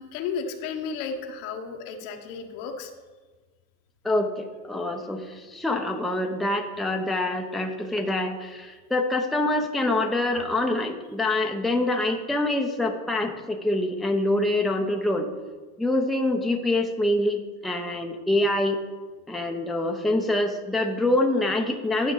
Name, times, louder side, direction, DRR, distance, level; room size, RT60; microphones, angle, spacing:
voice 1, 0.0-2.9, left 5 dB, 70° left, 4 dB, 1.4 m, -33 dB
voice 2, 4.0-15.3 15.8-18.8 19.3-22.1, left 2 dB, ahead, 3 dB, 0.7 m, -25 dB
10.5 x 6.1 x 4.0 m, 1.4 s
hypercardioid pair, 95°, 45 cm